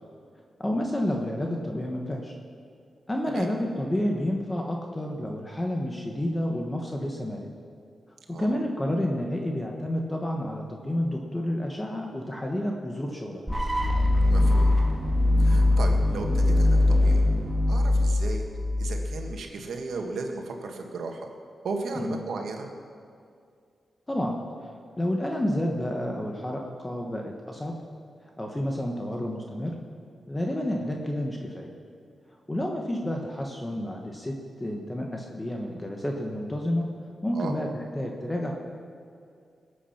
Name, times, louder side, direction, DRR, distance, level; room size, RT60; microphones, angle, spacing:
voice 1, 0.6-2.4 3.1-7.5 8.3-13.4 21.9-22.2 24.1-24.7 25.0-27.8 28.4-29.8 30.3-31.7 32.5-36.9 37.2-38.5, left 1 dB, 15° left, 1 dB, 1.4 m, -30 dB
sound 1, 13.5-19.4, left 2 dB, 10° right, 1.7 m, -22 dB
voice 2, 14.3-14.7 15.4-17.2 17.7-18.5 18.8-21.3 21.6-22.7 37.3-37.5, right 3 dB, 85° right, 3 dB, 1.8 m, -35 dB
21.0 x 8.4 x 5.9 m, 2.3 s
wide cardioid pair, 105°, 0 cm